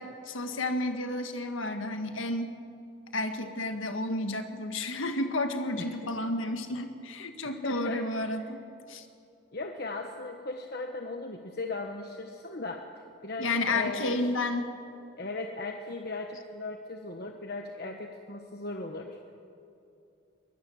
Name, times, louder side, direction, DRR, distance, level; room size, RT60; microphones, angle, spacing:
voice 1, 0.0-2.6 3.1-8.6 8.9-9.1 13.4-14.7, left 2 dB, 85° left, 6 dB, 1.7 m, -31 dB
voice 2, 7.4-8.1 9.5-14.2 15.2-19.2, left 2 dB, 50° left, 3 dB, 1.2 m, -37 dB
23.0 x 20.5 x 7.1 m, 2.6 s
head